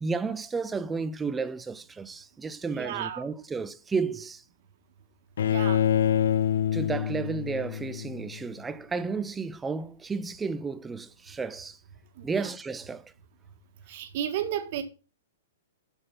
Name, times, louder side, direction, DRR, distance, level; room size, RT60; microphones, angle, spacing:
voice 1, 0.0-4.4 6.7-11.8 12.2-13.1, right 4 dB, 10° right, 0.6 m, -32 dB
voice 2, 2.7-3.2 5.4-5.8 12.2-12.5 13.9-14.8, right 10 dB, 55° right, 1.7 m, -33 dB
Bowed string instrument, 5.4-8.4, left 9 dB, 70° left, 0.4 m, -26 dB
7.6 x 6.2 x 5.5 m
hypercardioid pair, 125°, 0 cm